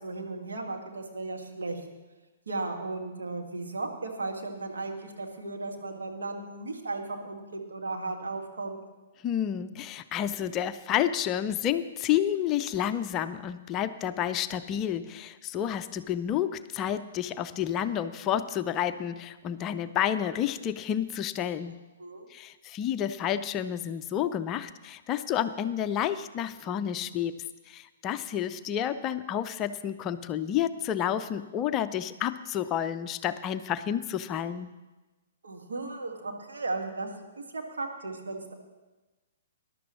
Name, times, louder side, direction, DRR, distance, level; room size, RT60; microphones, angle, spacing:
voice 1, 0.0-1.8 2.5-8.8 22.0-22.3 35.4-37.1 37.5-38.5, right 3 dB, 70° right, 2 dB, 1.9 m, -35 dB
voice 2, 9.2-21.8 22.3-34.7, left 10 dB, 25° left, 11 dB, 0.4 m, -30 dB
20.0 x 11.5 x 3.1 m, 1.2 s
figure-of-eight pair, 115°, 0 cm